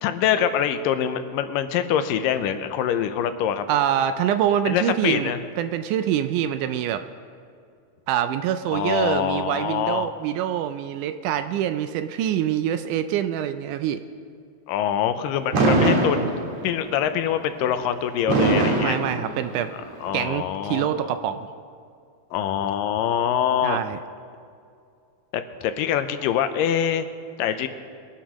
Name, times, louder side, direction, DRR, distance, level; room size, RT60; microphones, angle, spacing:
voice 1, 0.0-3.7 4.7-5.4 8.7-10.1 14.7-16.2 16.6-19.0 20.0-21.1 22.3-23.8 25.3-27.1 27.4-27.7, left 9 dB, 85° left, 9 dB, 2.4 m, -24 dB
voice 2, 3.7-7.0 8.1-14.0 18.8-19.7 20.1-21.5 23.6-24.0, right 10 dB, 80° right, 10 dB, 1.9 m, -25 dB
Fireworks, 15.5-16.8 18.3-19.8, right 2 dB, 60° right, 2.6 m, -21 dB
23.0 x 11.5 x 3.0 m, 2.3 s
omnidirectional pair, 3.8 m